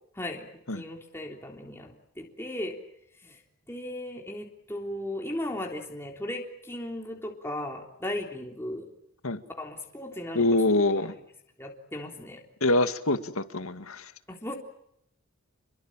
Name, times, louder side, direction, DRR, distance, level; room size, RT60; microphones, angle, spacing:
voice 1, 0.1-2.8 3.2-3.4 3.7-8.9 9.6-10.4 11.6-12.4 14.3-14.5, left 1 dB, 10° left, 1 dB, 3.5 m, -36 dB
voice 2, 10.3-11.1 12.6-14.1, left 2 dB, 80° left, 10 dB, 2.1 m, -25 dB
29.0 x 22.5 x 7.6 m, 0.75 s
head